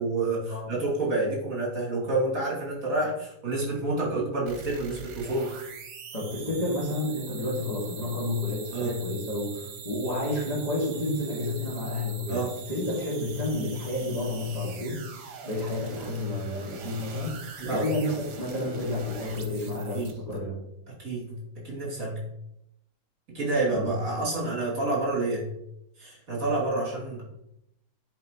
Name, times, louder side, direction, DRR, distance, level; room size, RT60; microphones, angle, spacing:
voice 1, 0.0-5.5 8.7-9.0 12.3-12.6 17.6-17.9 19.9-20.1 20.9-21.3 21.6-22.2 23.3-25.5 26.0-27.2, right 2 dB, 50° right, -5 dB, 3.1 m, -28 dB
sound 1, 4.5-20.4, right 6 dB, 75° right, 1.4 m, -43 dB
voice 2, 6.1-20.6 23.7-23.9, left 1 dB, 25° left, -8 dB, 2.0 m, -30 dB
10.0 x 4.4 x 3.0 m, 0.81 s
omnidirectional pair, 1.8 m